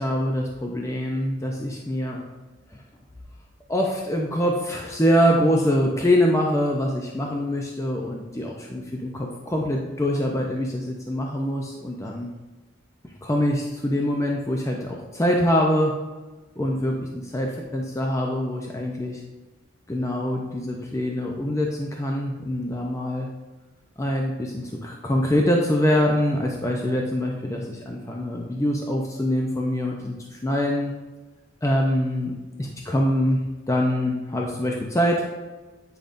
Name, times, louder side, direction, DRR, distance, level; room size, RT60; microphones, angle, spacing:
voice 1, 0.0-2.2 3.7-12.3 13.2-15.9 16.6-19.2 19.9-23.3 24.0-30.9 31.6-35.2, equal, 15° left, 0 dB, 0.5 m, -24 dB
9.2 x 5.1 x 2.5 m, 1.2 s
head